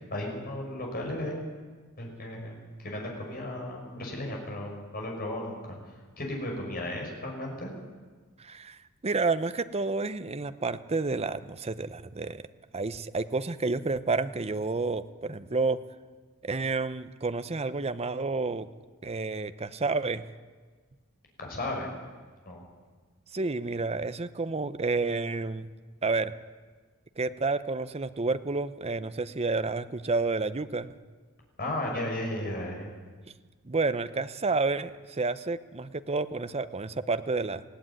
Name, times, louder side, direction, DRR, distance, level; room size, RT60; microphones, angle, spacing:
voice 1, 0.1-1.4 2.0-5.8 6.2-7.7 21.4-21.9 22.5-22.6 31.6-32.9, left 1 dB, 45° left, 0 dB, 6.3 m, -35 dB
voice 2, 8.4-12.4 12.7-15.8 16.4-18.7 19.0-20.3 23.3-25.7 26.0-26.3 27.2-30.9 33.6-37.6, right 3 dB, 30° right, 12 dB, 0.8 m, -30 dB
20.0 x 16.5 x 9.8 m, 1.4 s
head